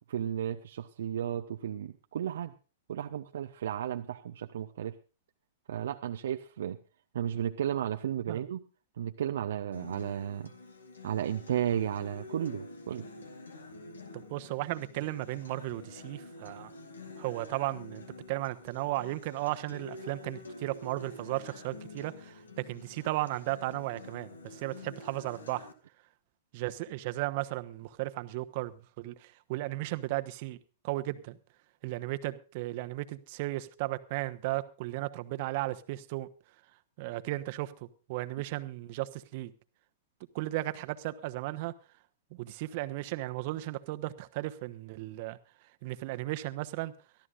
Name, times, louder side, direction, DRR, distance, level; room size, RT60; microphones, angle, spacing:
voice 1, 0.1-2.5 2.9-5.0 5.7-6.8 7.1-8.6 9.0-10.5 11.0-13.1, right 10 dB, 65° right, 0.7 m, -33 dB
Acoustic guitar, 9.7-25.7, left 3 dB, 80° left, 2.1 m, -48 dB
voice 2, 14.1-16.7 17.2-25.7 26.5-30.6 30.8-31.4 31.8-36.3 37.0-37.7 38.1-39.5 40.3-41.7 42.3-45.4 45.8-46.9, right 18 dB, 50° right, 1.1 m, -35 dB
23.5 x 13.5 x 2.5 m
figure-of-eight pair, 105°, 0 cm